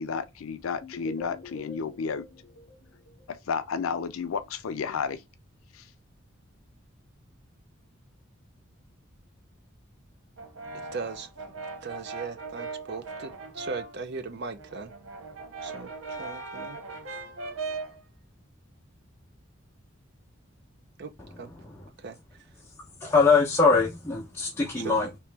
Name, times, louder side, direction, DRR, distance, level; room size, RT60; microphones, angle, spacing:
voice 1, 0.0-2.2 3.3-5.2 5.7-5.8, left 5 dB, 90° left, 0.4 m, -32 dB
sound 1, 0.8-3.7, left 2 dB, 50° left, 0.7 m, -47 dB
Brass instrument, 10.4-14.0 14.4-18.0, right 3 dB, 80° right, 0.8 m, -39 dB
voice 2, 10.9-11.3 11.8-14.9 15.6-16.8 21.0-21.1 21.4-21.5 22.0-22.2 24.8-24.9, right 4 dB, 55° right, 0.5 m, -38 dB
voice 3, 21.2-21.9 23.0-25.2, left 4 dB, 10° left, 0.7 m, -23 dB
3.0 x 3.0 x 3.3 m
head